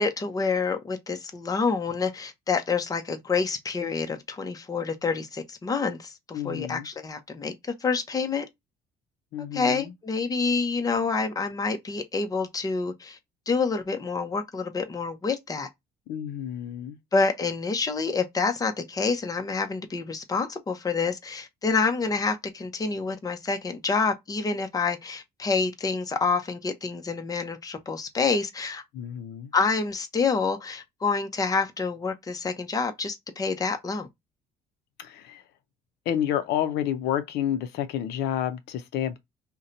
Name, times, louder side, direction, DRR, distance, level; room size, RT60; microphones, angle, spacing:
voice 1, 0.0-7.5 7.8-8.4 9.5-13.2 13.5-15.7 17.1-28.8 29.5-34.1, left 4 dB, 20° left, 0.7 m, -27 dB
voice 2, 6.3-6.9 9.3-9.9 16.1-17.0 28.9-29.5 35.0-35.4 36.1-39.2, left 10 dB, 80° left, 0.5 m, -29 dB
2.7 x 2.2 x 3.8 m
cardioid pair, 110°, 17 cm